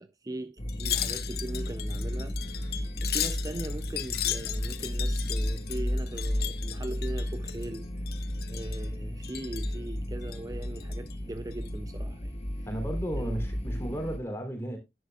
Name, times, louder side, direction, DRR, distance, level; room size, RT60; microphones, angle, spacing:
voice 1, 0.0-12.7 13.1-13.4, right 2 dB, 20° right, 0.4 m, -40 dB
sound 1, 0.6-14.2, equal, 35° left, 1.5 m, -33 dB
Wind chime, 0.7-7.8 8.1-8.9 9.2-9.8 10.2-11.1 11.5-11.7, left 12 dB, 60° left, 1.0 m, -36 dB
Telephone, 2.4-2.9 3.4-3.9 4.4-4.9 5.4-5.9 6.4-6.9 7.4-7.9 8.4-8.9 9.4-9.9 10.4-10.9, left 7 dB, 55° right, 3.0 m, -58 dB
voice 2, 12.7-14.8, right 1 dB, 15° left, 3.1 m, -34 dB
11.0 x 10.0 x 2.3 m
head